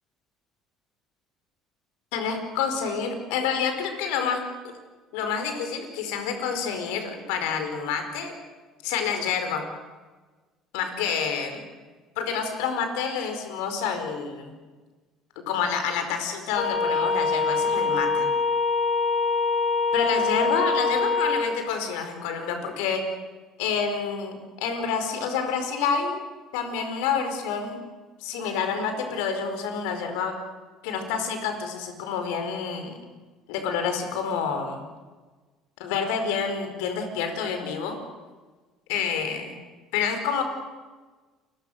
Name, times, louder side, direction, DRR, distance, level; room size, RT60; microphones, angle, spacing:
voice 1, 2.1-4.4 5.1-8.3 8.8-9.7 10.7-11.7 12.2-14.5 15.5-18.3 19.9-23.0 23.6-26.2 26.5-27.8 28.2-30.3 30.8-33.0 33.5-34.8 35.8-38.0 38.9-39.6 39.9-40.4, left 6 dB, 70° left, 6 dB, 4.8 m, -28 dB
sound 1, 16.6-21.4, left 4 dB, 50° left, 7.5 m, -24 dB
29.5 x 23.0 x 6.6 m, 1.3 s
hypercardioid pair, 60°, 0 cm